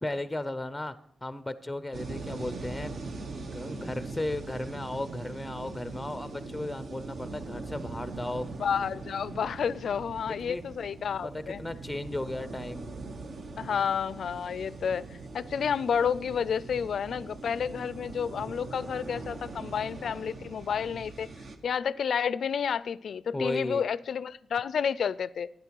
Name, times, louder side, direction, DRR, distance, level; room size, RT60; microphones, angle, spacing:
voice 1, 0.0-0.9 1.2-3.0 3.3-8.5 10.4-10.6 11.2-12.9 23.3-23.9, left 1 dB, 10° left, 0.5 m, -35 dB
sound 1, 1.9-21.6, right 3 dB, 70° right, 1.2 m, -41 dB
voice 2, 8.6-11.6 13.6-15.0 15.3-21.3 21.6-25.5, left 7 dB, 75° left, 0.4 m, -30 dB
12.0 x 9.8 x 4.5 m
wide cardioid pair, 125°, 0 cm